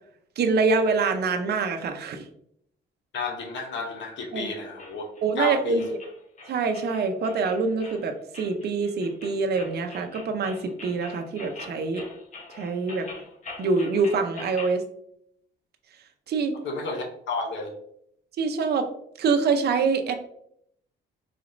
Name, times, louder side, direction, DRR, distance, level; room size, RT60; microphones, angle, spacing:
voice 1, 0.4-2.3 4.3-4.5 5.2-6.0 6.5-12.0 12.5-13.1 13.6-14.8 16.3-16.5 18.4-18.9 19.2-20.1, right 4 dB, 55° right, 5 dB, 0.6 m, -25 dB
voice 2, 3.1-5.1 5.4-5.8 16.6-17.7, left 3 dB, 70° left, 3 dB, 0.7 m, -31 dB
sound 1, 4.8-14.8, left 3 dB, 40° left, 1.0 m, -44 dB
4.1 x 3.0 x 2.5 m, 0.71 s
cardioid pair, 90°, 20 cm